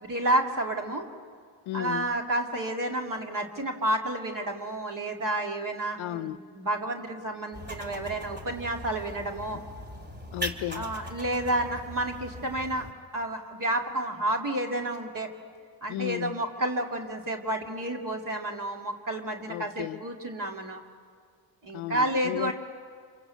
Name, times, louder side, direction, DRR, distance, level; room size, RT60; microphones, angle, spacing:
voice 1, 0.0-1.1 1.7-9.6 10.7-12.9 13.1-15.3 15.8-20.8 21.6-22.5, right 1 dB, 40° right, 2.5 m, -30 dB
voice 2, 1.7-2.1 6.0-6.4 10.3-10.9 15.9-16.4 19.5-20.0 21.7-22.5, left 14 dB, 80° left, 0.7 m, -34 dB
sound 1, 7.5-12.9, equal, 20° right, 2.4 m, -40 dB
27.5 x 24.5 x 8.3 m
cardioid pair, 95°, 47 cm